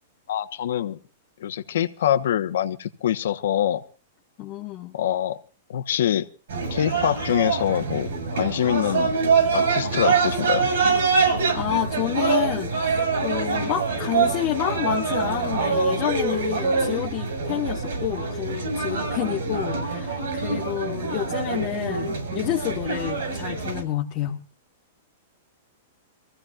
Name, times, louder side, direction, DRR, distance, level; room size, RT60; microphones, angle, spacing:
voice 1, 0.3-1.0 1.4-3.8 4.9-5.4 5.7-6.3 6.7-9.1 9.5-10.7, left 11 dB, 75° left, 1.0 m, -24 dB
voice 2, 4.4-4.9 11.5-24.4, left 13 dB, 35° left, 1.1 m, -29 dB
sound 1, 6.5-23.8, right 4 dB, 85° right, 7.2 m, -25 dB
26.5 x 15.0 x 2.4 m
supercardioid pair, 160°, 0 cm